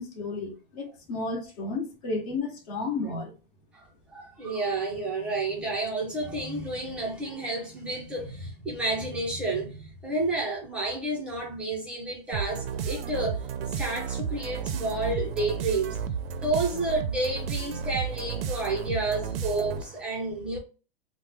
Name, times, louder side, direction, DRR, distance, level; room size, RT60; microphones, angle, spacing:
voice 1, 0.0-3.3, left 3 dB, 40° left, 1.1 m, -32 dB
voice 2, 4.1-16.0 16.4-20.6, right 2 dB, 5° right, 0.4 m, -30 dB
sound 1, 12.3-20.0, right 7 dB, 80° right, 0.5 m, -33 dB
2.9 x 2.0 x 3.4 m
supercardioid pair, 165°, 29 cm